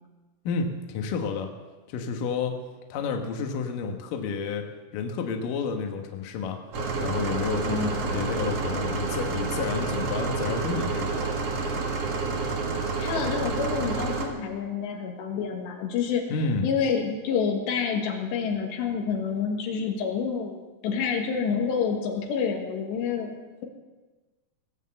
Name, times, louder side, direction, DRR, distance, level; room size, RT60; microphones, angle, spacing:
voice 1, 0.4-1.5 1.9-2.6 2.9-4.7 4.9-6.6 7.0-11.3 16.3-16.7, left 5 dB, 65° left, 4 dB, 2.5 m, -30 dB
sound 1, 6.7-14.3, right 4 dB, 55° right, 1.7 m, -29 dB
voice 2, 7.7-8.1 13.0-16.3 16.6-20.6 20.8-23.3, left 6 dB, 85° left, 2 dB, 3.8 m, -28 dB
19.5 x 8.1 x 7.7 m, 1.3 s
omnidirectional pair, 4.9 m